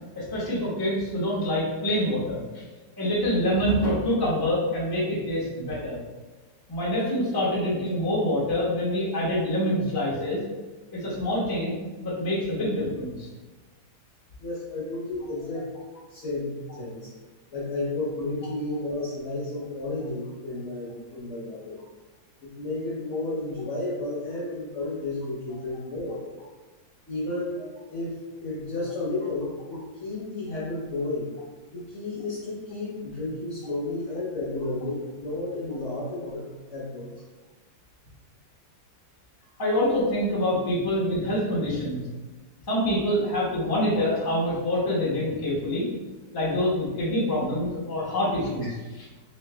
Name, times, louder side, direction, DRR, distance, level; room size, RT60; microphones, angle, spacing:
voice 1, 0.1-2.6 3.0-6.0 6.7-10.4 10.9-11.7 12.0-13.3 39.6-42.0 42.7-45.9 46.3-49.0, left 1 dB, 30° left, -6 dB, 0.4 m, -26 dB
voice 2, 14.4-15.7 16.1-17.1 17.5-21.8 22.4-26.2 27.1-28.1 28.4-31.3 31.7-37.1, left 2 dB, 55° left, -7 dB, 0.8 m, -32 dB
3.2 x 3.1 x 3.3 m, 1.2 s
omnidirectional pair, 2.2 m